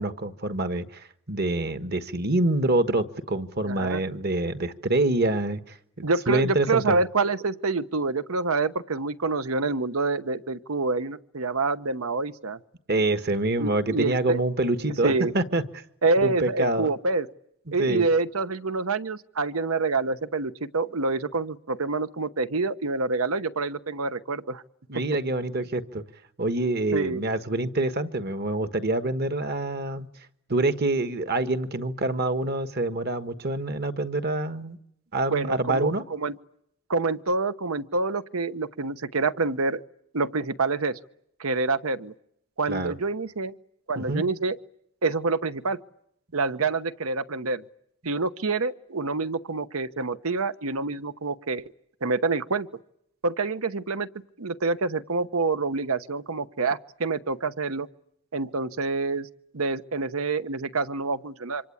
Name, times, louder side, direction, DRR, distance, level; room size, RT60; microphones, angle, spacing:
voice 1, 0.0-7.0 12.9-15.8 16.2-16.9 17.7-18.1 24.9-26.0 26.4-30.1 30.5-34.8 35.1-36.0 42.7-42.9 44.0-44.2, right 2 dB, 45° right, 11 dB, 1.4 m, -26 dB
voice 2, 3.7-4.0 6.0-12.6 13.6-14.4 15.0-15.3 16.0-17.3 17.7-24.6 26.9-27.2 35.3-36.3 36.9-39.8 40.1-41.0 41.4-42.1 42.6-43.5 43.9-44.6 45.0-45.8 46.3-47.6 48.0-51.6 52.0-52.7 53.2-54.1 54.4-57.9 58.3-59.3 59.5-61.6, right 3 dB, 80° right, 13 dB, 1.0 m, -27 dB
27.5 x 25.5 x 8.6 m, 0.75 s
head